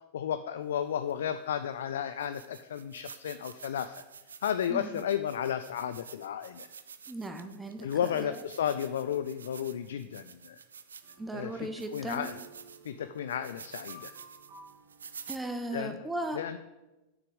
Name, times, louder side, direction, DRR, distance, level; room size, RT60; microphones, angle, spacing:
voice 1, 0.1-4.0 4.4-6.7 7.8-10.6 11.3-12.4 12.8-14.1 15.7-16.1 16.3-16.6, left 9 dB, 60° left, 11 dB, 0.4 m, -33 dB
sound 1, 1.1-1.2 1.8-1.9 2.2-11.3 11.8-15.4, right 6 dB, 70° right, 0.5 m, -49 dB
voice 2, 4.7-5.0 7.1-8.4 11.2-12.3 15.3-16.4, right 1 dB, 10° right, 6 dB, 1.1 m, -37 dB
sound 2, 11.0-16.0, right 3 dB, 45° right, 1.9 m, -54 dB
7.1 x 6.6 x 8.0 m, 1.1 s
figure-of-eight pair, 90°, 0 cm